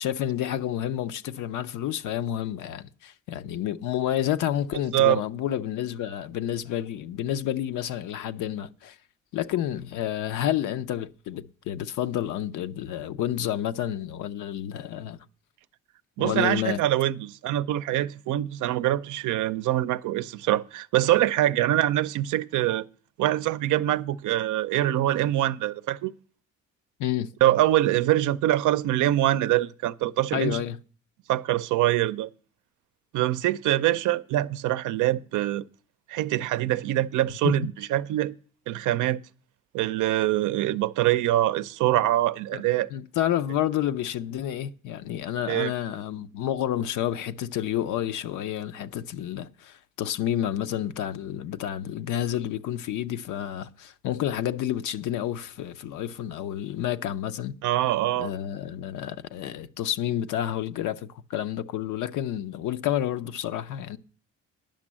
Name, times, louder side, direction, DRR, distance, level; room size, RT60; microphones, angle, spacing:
voice 1, 0.0-9.0 9.3-15.2 16.2-16.8 27.0-27.3 30.3-30.8 37.4-37.6 42.5-42.6 42.9-57.6 58.2-64.0, left 11 dB, 85° left, 0.6 m, -29 dB
voice 2, 16.2-22.8 23.2-26.1 27.4-30.6 31.3-32.3 33.1-35.6 36.1-38.4 38.7-39.2 39.7-42.9 45.5-45.7 57.6-58.3, right 14 dB, 80° right, 0.5 m, -24 dB
10.5 x 6.1 x 7.4 m
cardioid pair, 90°, 30 cm